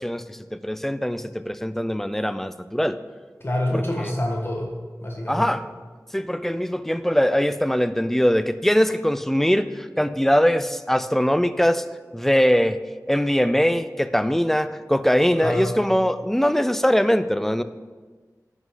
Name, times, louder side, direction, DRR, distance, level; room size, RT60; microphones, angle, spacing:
voice 1, 0.0-3.0 3.7-4.1 5.3-5.6 6.1-11.8 12.1-12.8 13.1-17.6, equal, 5° left, 12 dB, 0.4 m, -22 dB
voice 2, 3.4-4.7 5.0-5.5 15.3-15.7, left 1 dB, 40° left, -1 dB, 1.5 m, -26 dB
10.5 x 6.3 x 3.8 m, 1.4 s
wide cardioid pair, 55°, 6 cm